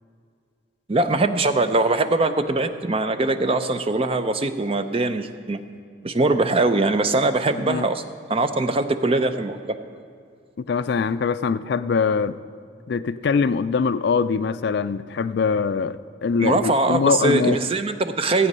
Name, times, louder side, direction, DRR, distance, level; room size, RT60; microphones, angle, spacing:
voice 1, 0.9-5.6 6.0-8.0 8.3-9.8 16.4-18.5, right 2 dB, 30° right, 9 dB, 0.5 m, -22 dB
voice 2, 10.7-12.4 12.9-17.6, left 5 dB, 55° left, 14 dB, 0.3 m, -23 dB
15.0 x 8.4 x 5.4 m, 2.2 s
head